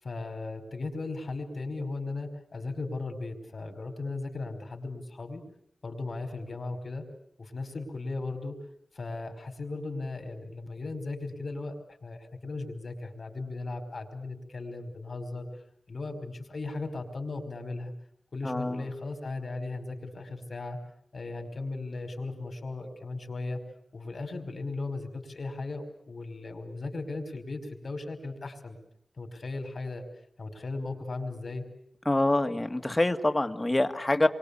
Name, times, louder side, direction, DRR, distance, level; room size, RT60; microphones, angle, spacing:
voice 1, 0.0-5.4 5.8-7.1 7.4-8.6 8.9-15.5 15.9-17.9 18.3-20.8 21.1-23.6 23.9-28.8 29.2-30.0 30.4-31.7, left 3 dB, 70° left, 6 dB, 5.1 m, -37 dB
voice 2, 18.4-18.8 32.1-34.3, left 1 dB, 25° left, 8 dB, 1.9 m, -26 dB
29.0 x 24.0 x 8.5 m, 0.71 s
wide cardioid pair, 80°, 0 cm